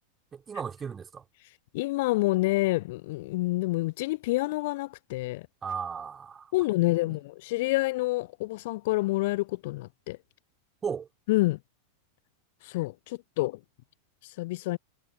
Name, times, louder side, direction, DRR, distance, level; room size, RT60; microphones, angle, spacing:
voice 1, 0.3-1.2 5.6-6.5 6.8-7.2 10.8-11.1, right 6 dB, 20° right, 4.5 m, -36 dB
voice 2, 1.7-5.4 6.5-10.2 11.3-11.6 12.6-13.6 14.4-14.8, left 20 dB, 50° left, 0.6 m, -28 dB
figure-of-eight pair, 90°, 0 cm